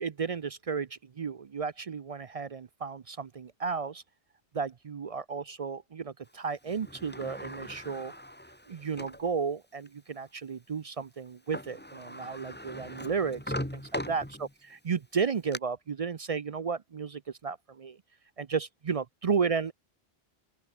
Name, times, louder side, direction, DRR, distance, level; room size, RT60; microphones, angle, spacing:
voice 1, 0.0-4.0 4.5-8.1 8.7-18.0 18.4-19.7, right 5 dB, 45° right, 0.5 m, -33 dB
Sliding door, 6.7-9.3 9.9-10.0 11.3-11.4 11.5-14.7 15.2-15.6, equal, 10° left, 3.3 m, -40 dB
open air
omnidirectional pair, 1.1 m